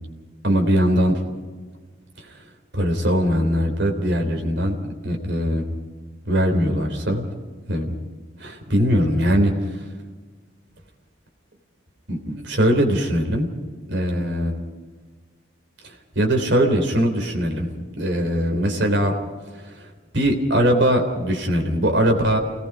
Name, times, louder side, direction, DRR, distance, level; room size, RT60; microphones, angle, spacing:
voice 1, 0.4-1.2 2.3-2.4 2.7-4.8 5.0-5.7 6.3-7.3 7.7-7.9 8.4-9.8 12.1-13.5 13.9-14.6 15.8-17.7 18.0-19.1 19.6-19.9 20.1-22.4, equal, 60° right, 2 dB, 3.6 m, -21 dB
28.5 x 19.0 x 5.0 m, 1.4 s
head